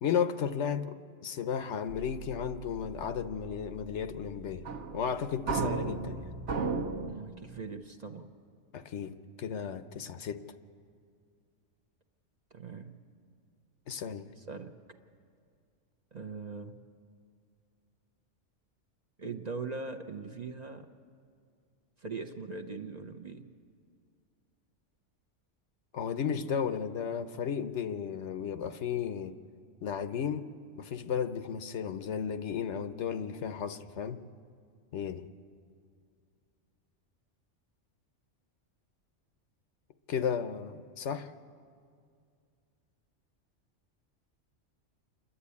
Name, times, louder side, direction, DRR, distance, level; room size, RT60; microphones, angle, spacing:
voice 1, 0.0-4.7 4.9-6.3 8.7-10.4 13.9-14.3 25.9-29.3 29.8-30.5 30.7-34.2 34.9-35.3 40.1-41.3, left 7 dB, 70° left, 10 dB, 1.0 m, -34 dB
sound 1, 1.9-7.2, right 4 dB, 70° right, 1.2 m, -36 dB
voice 2, 7.1-8.3 12.5-13.0 14.4-14.7 16.1-16.8 19.2-20.9 22.0-23.5, right 4 dB, 40° right, 5 dB, 0.8 m, -41 dB
28.0 x 11.5 x 8.4 m, 2.3 s
omnidirectional pair, 1.3 m